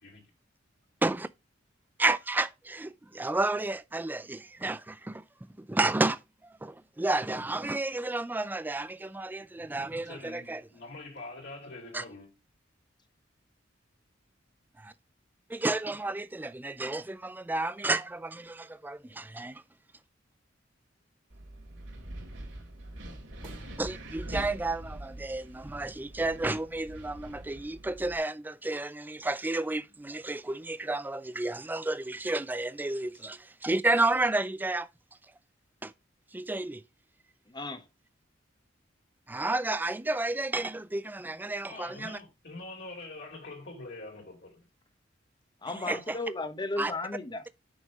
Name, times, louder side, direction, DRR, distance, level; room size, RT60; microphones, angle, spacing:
voice 1, 2.0-5.2 5.6-6.2 6.6-10.6 11.9-12.0 14.8-14.9 15.5-19.6 23.8-34.9 35.8-35.9 36.3-36.8 39.3-42.2 45.9-46.2 46.8-46.9, right 2 dB, 10° right, 0.4 m, -31 dB
voice 2, 10.0-12.3 41.6-44.6, left 2 dB, 60° left, 2.8 m, -44 dB
Wind, 21.3-28.2, right 1 dB, 75° right, 2.8 m, -43 dB
voice 3, 37.5-37.8 45.6-47.4, left 2 dB, 25° left, 1.0 m, -35 dB
6.3 x 5.5 x 5.0 m
head